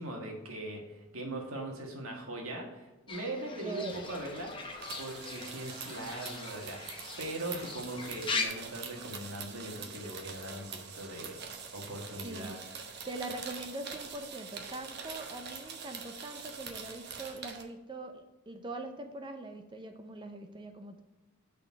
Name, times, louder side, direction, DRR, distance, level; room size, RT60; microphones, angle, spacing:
voice 1, 0.0-4.5 5.0-11.4 11.7-12.6, right 1 dB, 75° right, 1 dB, 1.7 m, -40 dB
Fowl / Bird, 3.1-8.5, left 4 dB, 25° left, 0.8 m, -40 dB
voice 2, 3.6-4.0 12.2-12.6 13.0-21.0, right 2 dB, 20° right, 5 dB, 0.5 m, -42 dB
sound 1, 4.7-17.6, right 6 dB, 50° right, 0.9 m, -44 dB
6.7 x 4.0 x 6.0 m, 1.1 s
head